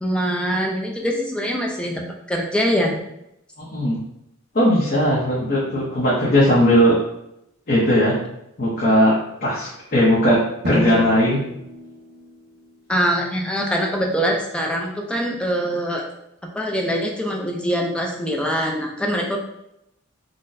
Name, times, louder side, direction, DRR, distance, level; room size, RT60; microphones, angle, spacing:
voice 1, 0.0-3.0 12.9-16.0 16.5-19.4, equal, 5° left, 0 dB, 0.4 m, -23 dB
voice 2, 3.6-4.0 4.5-7.0 7.7-8.1 8.6-10.4 10.6-11.4, equal, 45° left, -7 dB, 0.7 m, -18 dB
Drum, 10.6-13.2, left 1 dB, 50° right, 0.7 m, -30 dB
3.9 x 2.1 x 2.5 m, 0.81 s
head